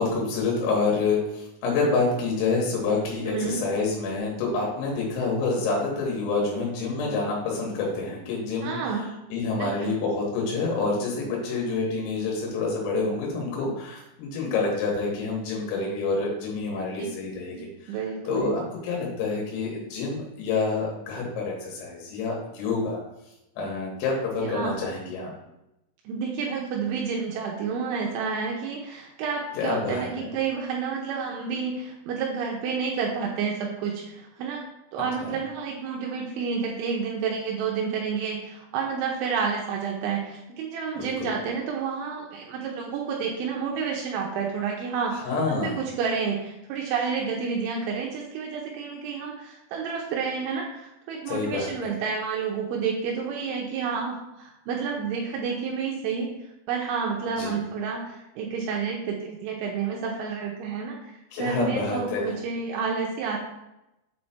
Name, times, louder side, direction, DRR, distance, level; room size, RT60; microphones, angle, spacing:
voice 1, 0.0-9.0 9.3-23.0 23.6-25.3 29.6-30.3 35.2-35.3 41.0-41.3 45.1-45.8 51.3-51.9 57.4-57.6 61.3-62.3, left 3 dB, 90° left, -2 dB, 3.9 m, -27 dB
voice 2, 3.3-3.6 8.6-9.1 9.6-10.0 17.5-17.6 17.9-18.6 24.4-24.8 26.1-34.6 34.9-56.3 56.7-61.0 61.4-63.4, right 5 dB, 80° right, -1 dB, 2.9 m, -30 dB
7.8 x 3.3 x 4.2 m, 0.90 s
omnidirectional pair, 5.9 m